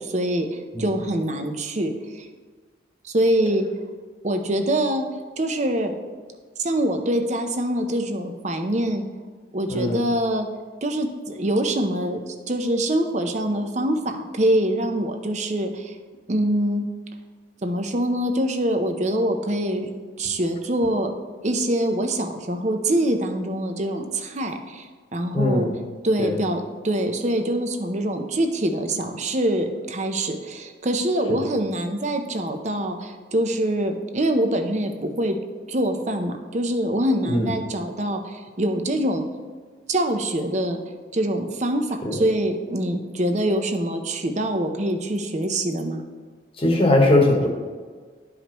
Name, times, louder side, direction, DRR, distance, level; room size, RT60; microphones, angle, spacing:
voice 1, 0.0-2.3 3.0-3.7 4.2-5.1 5.4-5.9 6.6-9.1 9.5-10.5 10.8-16.0 16.3-16.9 17.6-19.9 20.2-21.1 21.4-25.7 26.0-35.4 35.7-39.2 39.9-40.8 41.1-46.0, right 1 dB, 40° right, 5 dB, 0.6 m, -24 dB
voice 2, 9.7-10.1 25.3-25.7 26.2-26.4 31.3-31.4 37.2-37.5 42.0-42.2 46.6-47.5, left 1 dB, 30° left, 0 dB, 1.1 m, -20 dB
11.5 x 4.9 x 3.0 m, 1.5 s
head